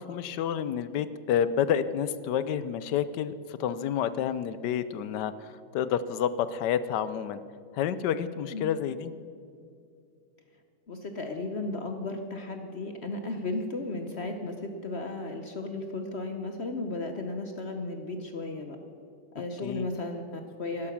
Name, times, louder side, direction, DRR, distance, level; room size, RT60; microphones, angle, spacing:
voice 1, 0.0-7.4 7.7-9.1 19.6-19.9, left 9 dB, 70° left, 14 dB, 1.1 m, -29 dB
voice 2, 10.9-18.8 19.3-20.9, left 2 dB, 50° left, 6 dB, 0.8 m, -35 dB
12.0 x 11.5 x 7.1 m, 2.5 s
omnidirectional pair, 2.1 m